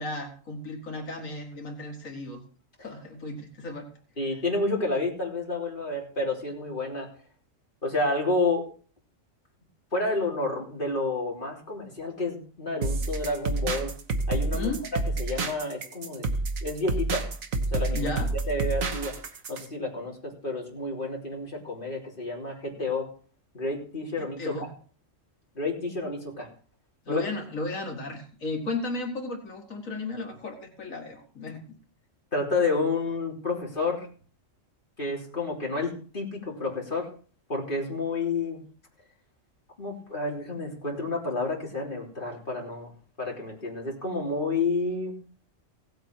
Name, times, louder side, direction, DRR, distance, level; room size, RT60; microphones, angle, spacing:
voice 1, 0.0-2.4 2.8-3.9 14.5-14.8 17.9-18.3 24.2-24.7 27.1-31.6, left 2 dB, 85° left, 3 dB, 2.4 m, -34 dB
voice 2, 4.2-7.1 7.8-8.6 9.9-13.9 14.3-14.7 15.2-16.3 16.6-17.2 17.7-18.1 18.5-19.1 19.5-23.1 23.5-24.5 25.6-26.5 27.1-27.2 32.3-34.1 35.0-37.1 37.5-38.6 39.8-42.9 43.2-45.2, left 3 dB, 40° left, -2 dB, 3.5 m, -30 dB
sound 1, 12.8-19.7, right 3 dB, 90° right, 1.8 m, -29 dB
17.0 x 8.2 x 4.7 m, 0.42 s
omnidirectional pair, 1.4 m